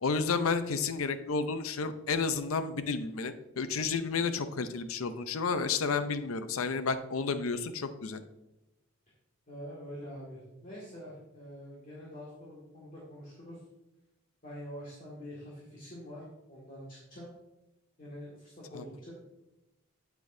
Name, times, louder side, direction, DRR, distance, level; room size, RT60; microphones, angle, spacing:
voice 1, 0.0-8.2 18.7-18.8, left 4 dB, 85° left, 11 dB, 0.6 m, -31 dB
voice 2, 9.5-13.6 14.4-17.3 18.0-19.1, equal, 40° left, -7 dB, 2.0 m, -45 dB
8.4 x 8.3 x 2.7 m, 0.95 s
head